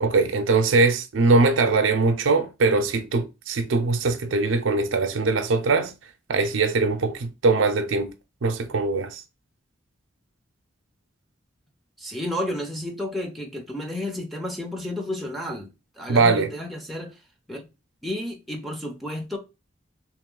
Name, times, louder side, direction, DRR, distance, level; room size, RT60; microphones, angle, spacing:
voice 1, 0.0-5.9 6.3-8.1 8.4-9.2 16.1-16.5, right 3 dB, 80° right, 0.5 m, -21 dB
voice 2, 12.0-17.2 17.5-17.7 18.0-19.4, left 1 dB, ahead, 0.6 m, -32 dB
3.2 x 3.0 x 3.7 m
head